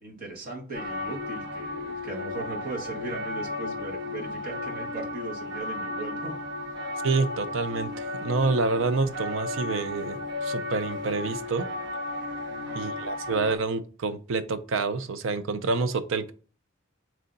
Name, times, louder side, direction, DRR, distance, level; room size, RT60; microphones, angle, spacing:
voice 1, 0.0-6.4 12.5-12.9, right 2 dB, 45° right, 1.3 m, -38 dB
sound 1, 0.7-13.6, left 2 dB, 60° right, 1.3 m, -34 dB
voice 2, 7.0-11.7 12.7-16.3, right 4 dB, 80° right, 0.5 m, -28 dB
3.7 x 3.3 x 3.9 m
head